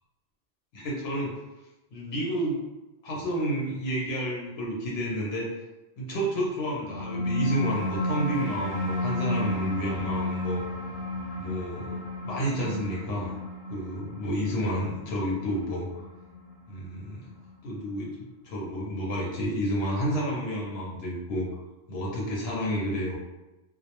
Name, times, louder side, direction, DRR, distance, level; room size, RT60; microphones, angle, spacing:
voice 1, 0.7-1.3 1.9-2.6 3.0-5.5 6.0-10.6 11.4-13.4 13.7-16.1 16.7-17.3 17.6-18.2 18.4-21.5 21.9-23.2, equal, 85° left, -4 dB, 0.8 m, -30 dB
sound 1, 6.7-17.7, left 1 dB, 50° left, 0.5 m, -32 dB
2.1 x 2.0 x 2.8 m, 1.0 s
omnidirectional pair, 1.0 m